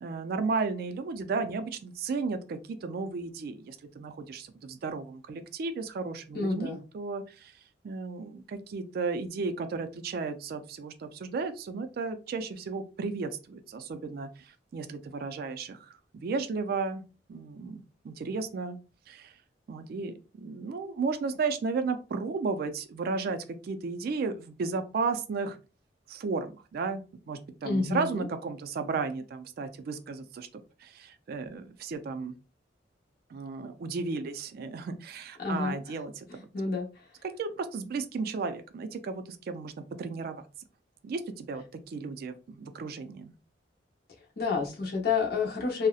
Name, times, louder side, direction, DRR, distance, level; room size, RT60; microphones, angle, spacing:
voice 1, 0.0-7.5 7.8-17.0 17.3-18.8 19.1-19.3 19.7-25.6 26.1-27.0 27.3-30.5 30.8-32.3 33.3-36.4 37.4-39.7 40.0-40.4 41.0-43.3, right 4 dB, 55° right, 9 dB, 0.3 m, -34 dB
voice 2, 6.3-6.8 27.6-28.2 35.4-35.8 36.5-36.9 44.4-45.9, left 4 dB, 55° left, -2 dB, 0.7 m, -29 dB
2.7 x 2.0 x 2.3 m, 0.32 s
head